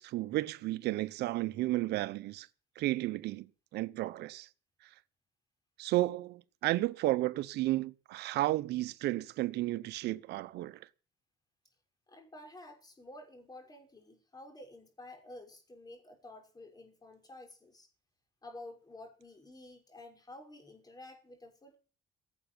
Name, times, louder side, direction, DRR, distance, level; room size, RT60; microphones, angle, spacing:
voice 1, 0.0-2.5 2.8-3.5 3.7-4.5 5.8-10.9, right 17 dB, 80° right, 0.9 m, -32 dB
voice 2, 12.1-17.9 18.4-21.8, left 1 dB, 20° left, 6.0 m, -51 dB
17.0 x 8.2 x 9.1 m
cardioid pair, 110°, 17 cm